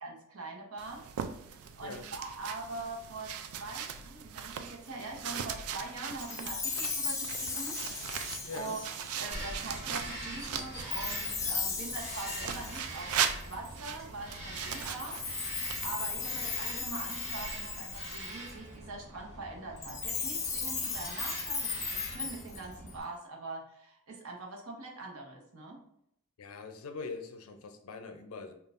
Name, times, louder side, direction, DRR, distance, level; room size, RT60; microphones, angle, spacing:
voice 1, 0.0-1.0 1.5-7.8 8.5-8.8 9.1-15.2 15.8-25.8, right 3 dB, 70° right, 0 dB, 0.9 m, -43 dB
sound 1, 0.8-11.4 12.4-16.8, right 8 dB, 90° right, 0.4 m, -39 dB
Chime, 6.2-9.5 10.9-13.7 14.7-18.5 19.8-22.9, left 5 dB, 15° left, 0.4 m, -36 dB
Bird vocalization bird call bird song, 9.3-23.0, right 1 dB, 30° right, 1.1 m, -44 dB
voice 2, 26.4-28.5, left 4 dB, 80° left, 7 dB, 0.5 m, -42 dB
5.2 x 2.4 x 2.5 m, 0.74 s
head